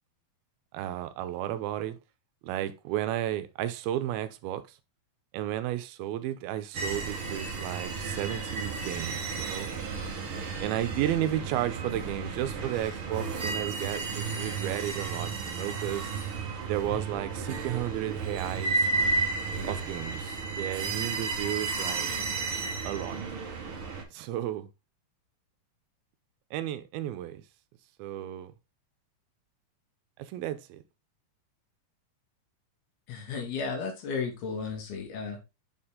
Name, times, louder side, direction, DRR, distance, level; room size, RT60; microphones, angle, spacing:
voice 1, 0.7-2.0 2.4-4.8 5.3-9.7 10.6-16.1 16.7-18.9 19.6-22.1 22.8-23.2 24.1-24.7 26.5-27.4 28.0-28.5 30.2-30.8, right 12 dB, 80° right, 2.5 m, -33 dB
sound 1, 6.7-24.0, right 4 dB, 60° right, 1.4 m, -33 dB
voice 2, 33.1-35.4, left 5 dB, 85° left, 3.7 m, -34 dB
7.2 x 4.4 x 3.6 m
omnidirectional pair, 4.4 m